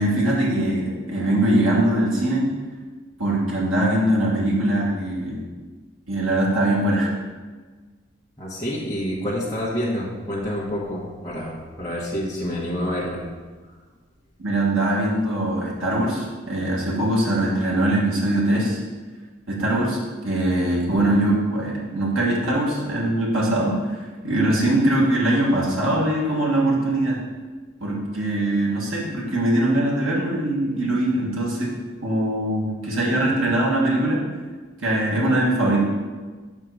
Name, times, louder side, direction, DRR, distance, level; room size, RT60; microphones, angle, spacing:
voice 1, 0.0-2.5 3.2-5.4 6.1-7.1 14.4-18.8 19.5-27.2 27.8-31.7 32.0-34.2 34.8-35.8, right 1 dB, 85° right, -4 dB, 1.6 m, -22 dB
voice 2, 8.4-13.2, equal, 15° left, -8 dB, 1.1 m, -28 dB
7.5 x 3.7 x 6.4 m, 1.4 s
head